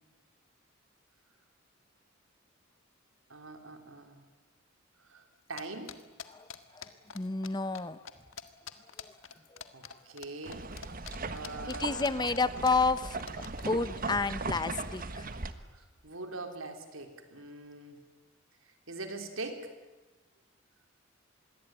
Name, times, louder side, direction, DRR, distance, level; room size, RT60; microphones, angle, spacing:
voice 1, 3.3-4.2 5.0-5.9 9.3-9.4 9.7-10.7 11.3-12.2 15.7-18.0 18.6-19.7, right 2 dB, 85° right, 5 dB, 3.7 m, -43 dB
sound 1, 5.6-7.5 7.8-7.9 8.1-13.7, left 7 dB, 75° left, 1.7 m, -45 dB
voice 2, 6.7-8.0 9.0-9.1 9.5-10.0 11.7-13.2 13.7-15.3, left 3 dB, 20° left, 15 dB, 0.8 m, -31 dB
sound 2, 10.5-15.5, right 3 dB, 45° right, 1.4 m, -38 dB
26.5 x 21.5 x 9.1 m, 1.1 s
head